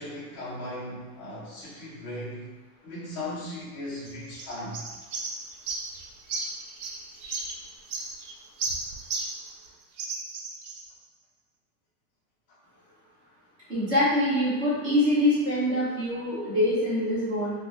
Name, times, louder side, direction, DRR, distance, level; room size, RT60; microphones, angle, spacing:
voice 1, 0.0-2.5 2.8-4.8, left 1 dB, 20° left, -13 dB, 0.3 m, -37 dB
sound 1, 4.1-9.7 10.0-10.9, right 3 dB, 75° right, 0.7 m, -35 dB
voice 2, 13.7-17.5, left 1 dB, 30° right, -10 dB, 1.1 m, -24 dB
2.8 x 2.1 x 3.4 m, 1.3 s
supercardioid pair, 175°, 44 cm